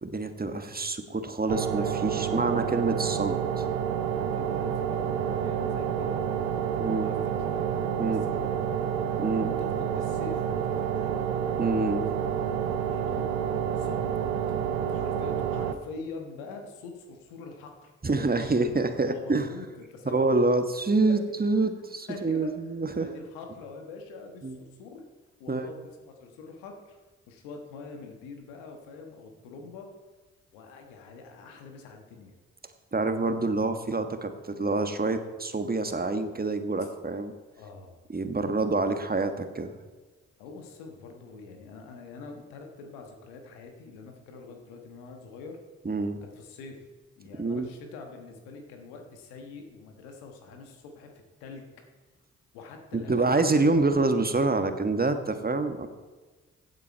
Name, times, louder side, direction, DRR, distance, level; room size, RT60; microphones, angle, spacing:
voice 1, 0.0-3.7 6.8-7.1 8.0-8.2 9.2-9.5 11.6-12.1 18.0-19.5 20.1-23.1 24.4-24.6 25.5-25.6 32.9-37.3 38.1-39.8 45.8-46.2 47.4-47.7 52.9-55.9, right 3 dB, 25° right, 8 dB, 1.4 m, -27 dB
sound 1, 1.5-15.7, right 8 dB, 85° right, 0.6 m, -29 dB
voice 2, 4.3-6.2 6.8-7.7 8.0-8.6 9.4-11.2 12.9-13.3 13.7-14.1 14.9-18.6 18.9-20.4 21.1-21.4 22.1-22.5 22.9-25.0 25.4-27.0 27.3-29.9 30.5-32.4 36.8-36.9 37.6-38.0 40.4-45.6 46.2-46.8 47.2-51.7 52.5-53.5, left 4 dB, 85° left, 4 dB, 1.4 m, -44 dB
15.5 x 8.3 x 4.6 m, 1.3 s
hypercardioid pair, 40°, 34 cm